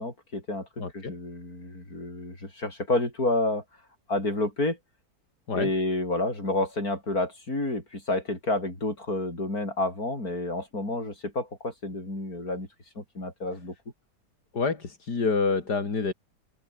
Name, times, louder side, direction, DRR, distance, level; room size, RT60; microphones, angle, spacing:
voice 1, 0.0-0.7 0.9-3.6 4.1-4.8 5.5-12.7 13.0-13.7, left 2 dB, 60° left, 8.0 m, -29 dB
voice 2, 0.8-1.1 5.5-5.7 14.5-16.1, left 4 dB, 75° left, 3.8 m, -27 dB
omnidirectional pair, 1.8 m